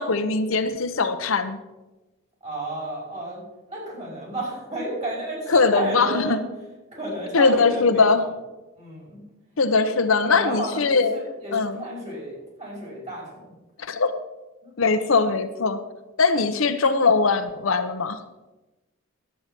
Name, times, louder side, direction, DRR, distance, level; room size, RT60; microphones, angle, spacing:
voice 1, 0.0-1.6 5.5-6.4 7.3-8.3 9.6-11.2 11.5-11.8 13.8-14.1 14.8-15.8 16.2-18.2, left 4 dB, 80° left, 9 dB, 0.9 m, -21 dB
voice 2, 2.4-3.4 3.7-6.3 6.9-8.3 8.8-9.2 10.3-13.5 14.6-14.7, right 1 dB, 30° right, -3 dB, 5.2 m, -32 dB
11.0 x 8.6 x 6.0 m, 1.1 s
head